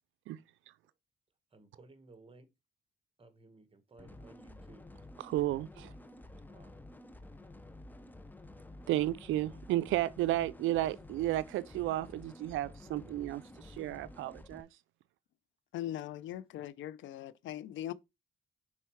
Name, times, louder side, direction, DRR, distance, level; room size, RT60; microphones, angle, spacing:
voice 1, 1.5-2.5 3.2-4.9 6.5-6.8, right 3 dB, 25° right, 1.5 m, -58 dB
sound 1, 4.0-14.6, left 2 dB, 10° left, 0.6 m, -51 dB
voice 2, 5.2-5.9 8.9-14.7, right 15 dB, 85° right, 0.4 m, -33 dB
voice 3, 15.7-17.9, left 12 dB, 75° left, 0.5 m, -40 dB
5.6 x 4.3 x 4.6 m
cardioid pair, 90°, 20 cm